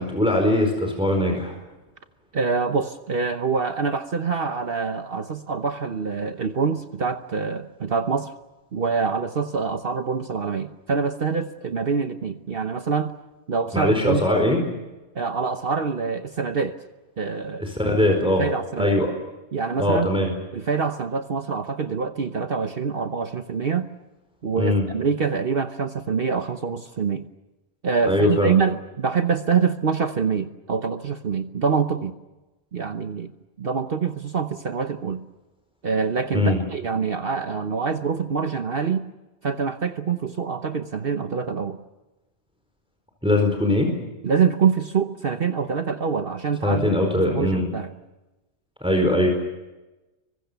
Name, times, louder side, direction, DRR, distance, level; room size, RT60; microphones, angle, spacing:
voice 1, 0.0-1.6 13.7-14.6 17.6-18.5 18.8-19.1 19.8-20.4 24.6-24.9 28.1-28.6 36.3-36.6 43.2-43.9 46.6-47.7 48.8-49.3, left 1 dB, 5° right, 2 dB, 4.5 m, -21 dB
voice 2, 2.3-8.3 8.7-13.1 13.5-14.3 15.1-16.8 17.2-17.7 18.2-18.9 19.5-20.1 20.5-23.9 24.4-27.3 27.8-32.2 32.7-33.3 33.6-35.2 35.8-39.0 39.4-41.8 44.2-47.9, right 5 dB, 50° right, 8 dB, 1.1 m, -25 dB
27.0 x 24.0 x 6.9 m, 1.1 s
omnidirectional pair, 1.3 m